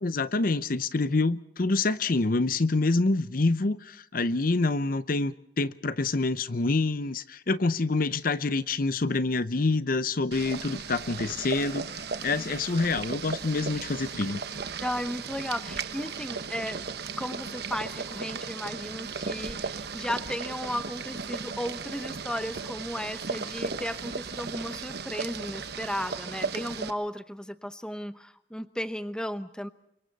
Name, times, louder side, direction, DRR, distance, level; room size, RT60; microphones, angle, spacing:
voice 1, 0.0-14.4, left 3 dB, 50° left, 0.7 m, -27 dB
Boiling, 10.3-26.9, right 5 dB, 60° right, 1.2 m, -36 dB
voice 2, 14.8-16.9 17.2-29.7, equal, 5° left, 0.8 m, -35 dB
29.0 x 24.5 x 4.1 m
head